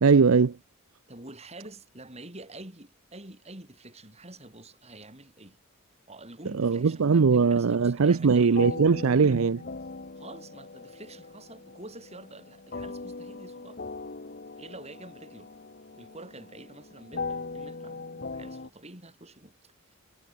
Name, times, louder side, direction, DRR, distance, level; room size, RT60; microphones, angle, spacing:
voice 1, 0.0-0.5 6.6-9.6, right 5 dB, 70° right, 0.5 m, -20 dB
voice 2, 1.1-5.6 6.1-8.8 10.2-13.8 14.6-15.5 16.0-20.0, right 2 dB, 30° right, 5.9 m, -47 dB
sound 1, 8.5-18.7, left 3 dB, 45° left, 1.2 m, -40 dB
head